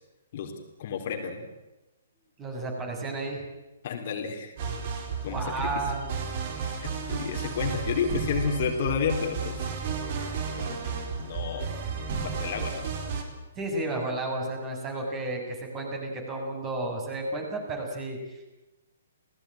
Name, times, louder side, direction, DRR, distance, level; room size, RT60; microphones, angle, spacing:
voice 1, 0.8-1.5 3.8-4.5 5.2-5.7 6.6-9.7 10.6-11.7 12.2-12.9, left 6 dB, 45° left, 3 dB, 4.0 m, -31 dB
voice 2, 2.4-3.4 5.2-6.1 13.6-18.5, right 2 dB, 20° right, 2 dB, 7.6 m, -32 dB
sound 1, 4.6-13.2, right 5 dB, 40° right, 4.9 m, -33 dB
29.5 x 19.0 x 9.1 m, 1.1 s
figure-of-eight pair, 125°, 0 cm